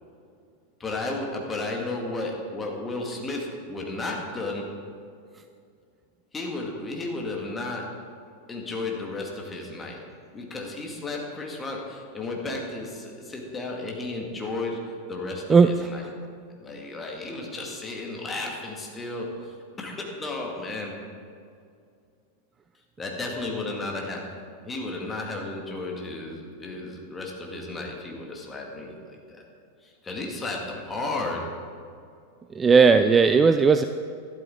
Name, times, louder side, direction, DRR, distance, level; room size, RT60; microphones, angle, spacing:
voice 1, 0.8-4.7 6.3-7.9 8.5-10.0 10.3-14.8 15.1-16.1 16.6-19.5 19.8-20.9 23.0-29.5 29.8-31.5 33.2-33.3, left 2 dB, 15° left, 0 dB, 1.9 m, -33 dB
voice 2, 32.6-33.8, right 5 dB, 20° right, 9 dB, 0.3 m, -16 dB
12.0 x 11.5 x 3.7 m, 2.3 s
figure-of-eight pair, 90°, 0 cm